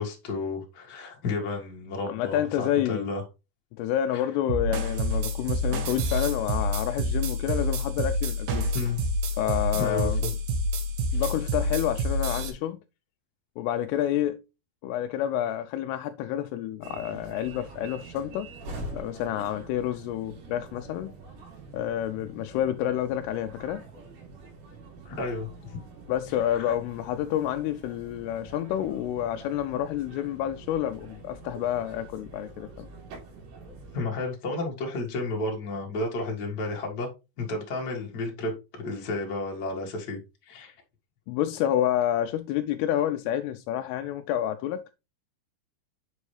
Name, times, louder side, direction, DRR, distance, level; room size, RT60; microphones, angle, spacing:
voice 1, 0.0-3.2 4.1-4.3 8.7-9.0 9.8-10.1 11.1-11.3 25.0-25.5 26.5-26.7 33.9-37.1 37.4-40.7, left 3 dB, 65° left, 1.0 m, -32 dB
voice 2, 2.1-3.1 3.8-8.7 9.4-10.2 11.1-12.8 13.6-14.4 14.8-18.5 18.9-21.1 21.7-23.8 26.1-32.9 41.3-45.0, left 11 dB, 85° left, 2.3 m, -29 dB
sound 1, 4.5-12.5, equal, 65° right, 2.7 m, -28 dB
sound 2, 16.8-34.0, right 2 dB, 85° right, 5.3 m, -45 dB
9.3 x 5.4 x 3.2 m
omnidirectional pair, 5.1 m